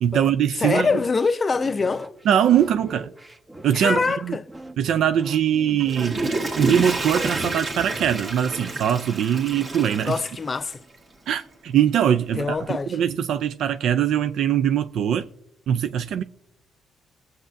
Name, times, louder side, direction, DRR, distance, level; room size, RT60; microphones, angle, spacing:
voice 1, 0.0-0.9 2.3-3.1 3.6-4.4 4.8-6.3 6.6-10.2 11.3-15.3 15.7-16.2, right 9 dB, 75° right, 0.3 m, -22 dB
voice 2, 0.6-2.1 3.7-4.4 10.1-10.8 12.4-13.0, left 4 dB, 35° left, 0.5 m, -24 dB
sound 1, 0.8-10.5, right 1 dB, 20° right, 0.9 m, -42 dB
Water / Toilet flush, 5.6-10.9 11.4-11.5, right 2 dB, 40° right, 1.9 m, -29 dB
18.5 x 7.5 x 2.6 m
cardioid pair, 90°, 0 cm